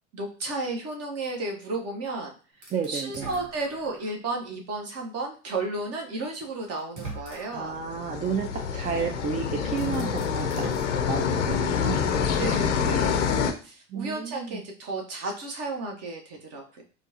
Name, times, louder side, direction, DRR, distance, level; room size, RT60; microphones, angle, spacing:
voice 1, 0.1-2.3 2.9-7.8 12.4-16.8, right 2 dB, 45° right, 1 dB, 1.1 m, -33 dB
sound 1, 2.6-4.2 4.8-4.9 6.1-6.2 6.8-7.8 9.2-9.3 9.7-11.7, right 3 dB, 85° right, 1.1 m, -42 dB
voice 2, 2.7-3.3 7.5-10.7 11.1-12.1 13.9-14.6, right 6 dB, 25° right, 4 dB, 0.4 m, -31 dB
sound 2, 7.7-13.5, left 7 dB, 80° left, 0.5 m, -26 dB
4.3 x 2.3 x 2.8 m, 0.37 s
figure-of-eight pair, 65°, 35 cm